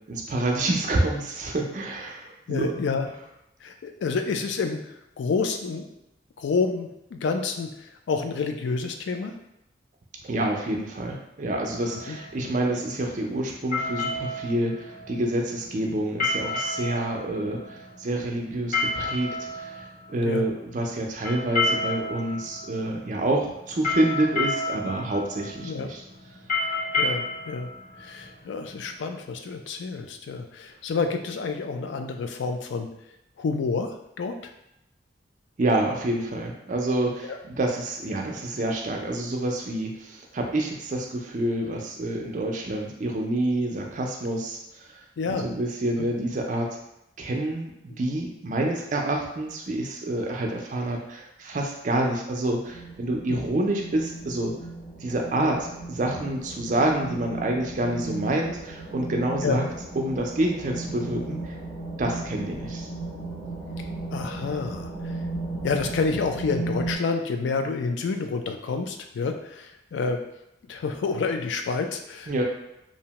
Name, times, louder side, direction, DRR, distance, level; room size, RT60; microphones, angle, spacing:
voice 1, 0.1-2.7 10.2-19.8 20.1-26.0 35.6-45.0 45.3-46.7 47.2-54.5 55.0-59.6 60.0-61.4 62.0-62.9 72.3-72.4, right 1 dB, 45° right, 1 dB, 0.4 m, -27 dB
voice 2, 2.5-3.1 3.6-5.9 6.4-9.3 12.1-12.2 20.2-20.4 25.6-25.9 27.0-27.7 28.0-32.9 33.4-34.4 37.2-37.4 45.2-45.5 53.3-53.4 59.4-59.6 62.5-62.6 64.1-65.2 65.6-70.2 70.7-72.4, left 4 dB, 90° left, 5 dB, 0.3 m, -29 dB
sound 1, 11.8-28.9, left 2 dB, 50° left, 0.9 m, -31 dB
sound 2, 52.7-67.0, right 2 dB, ahead, 1.0 m, -35 dB
2.7 x 2.1 x 2.9 m, 0.84 s
head